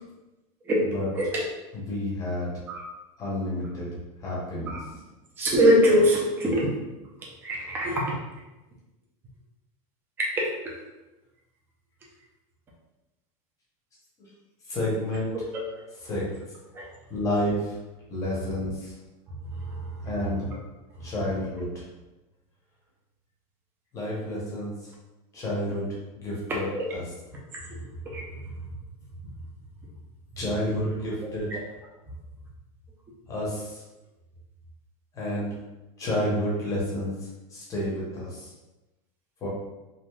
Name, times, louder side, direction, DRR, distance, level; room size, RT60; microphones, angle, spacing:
voice 1, 1.7-2.5 3.2-3.9 4.2-4.8 14.2-14.3 14.7-15.3 16.0-16.3 17.1-17.8 18.1-18.9 20.0-20.4 21.0-21.9 23.9-24.9 25.3-25.9 26.2-26.7 26.9-27.0 30.4-31.5 33.3-33.8 35.1-35.5 36.0-38.5 39.4-39.5, left 1 dB, 20° left, -5 dB, 0.7 m, -30 dB
voice 2, 5.4-6.7 7.4-8.1 16.7-16.9 19.7-19.8 26.7-26.9 27.7-27.8 28.1-28.2, equal, 10° right, -4 dB, 0.4 m, -22 dB
3.1 x 2.5 x 2.2 m, 1.1 s
supercardioid pair, 175°, 18 cm